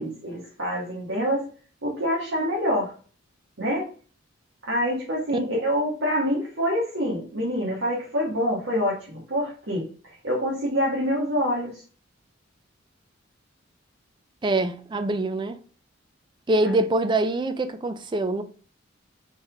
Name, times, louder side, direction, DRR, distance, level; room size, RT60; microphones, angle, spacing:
voice 1, 0.0-1.4 1.8-2.9 3.6-3.9 4.6-9.8 10.2-11.8, equal, 70° right, 1.6 m, -26 dB
voice 2, 14.4-15.6 16.5-18.4, right 2 dB, 25° right, 0.4 m, -24 dB
4.2 x 3.7 x 3.4 m
head